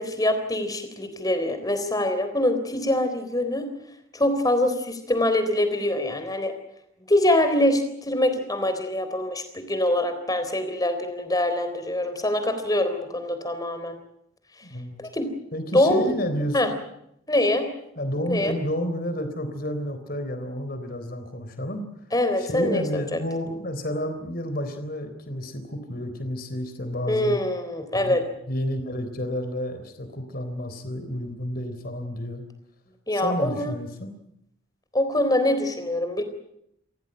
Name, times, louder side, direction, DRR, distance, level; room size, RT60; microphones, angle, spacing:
voice 1, 0.0-3.7 4.1-6.5 7.1-14.0 15.0-15.3 15.7-16.2 16.5-16.7 17.3-17.7 18.3-18.5 22.1-23.2 27.1-28.2 33.1-33.7 34.9-36.2, left 1 dB, 20° left, 9 dB, 3.8 m, -24 dB
voice 2, 14.6-15.0 15.5-16.8 18.0-21.9 22.4-27.4 27.9-28.1 28.5-32.4 33.1-34.1, equal, 50° left, 9 dB, 3.9 m, -30 dB
29.0 x 15.5 x 9.0 m, 0.77 s
head